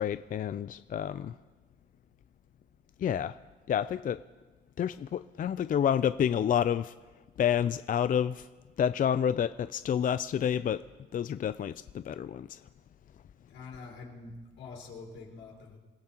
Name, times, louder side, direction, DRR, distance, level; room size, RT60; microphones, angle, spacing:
voice 1, 0.0-1.3 3.0-3.4 3.7-4.2 4.8-6.9 7.4-8.5 8.8-10.8 11.1-12.6, left 9 dB, 45° left, 0.4 m, -29 dB
voice 2, 13.5-15.8, left 4 dB, 80° left, 4.6 m, -46 dB
27.0 x 16.5 x 3.0 m
cardioid pair, 90°, 20 cm